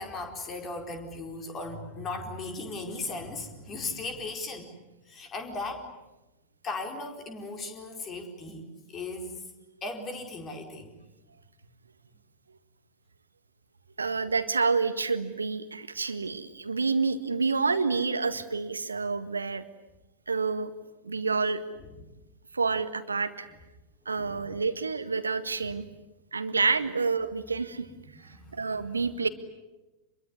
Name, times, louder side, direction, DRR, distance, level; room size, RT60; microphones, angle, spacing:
voice 1, 0.0-4.7 5.1-5.8 6.6-9.3 9.8-10.9 24.1-24.6 28.2-29.1, left 3 dB, 25° left, 4 dB, 4.6 m, -37 dB
voice 2, 14.0-19.6 20.3-20.7 21.0-21.6 22.5-23.5 24.0-25.8 26.3-27.9 28.2-29.3, right 4 dB, 75° right, 12 dB, 1.7 m, -28 dB
27.0 x 22.5 x 9.7 m, 1.0 s
figure-of-eight pair, 90°, 0 cm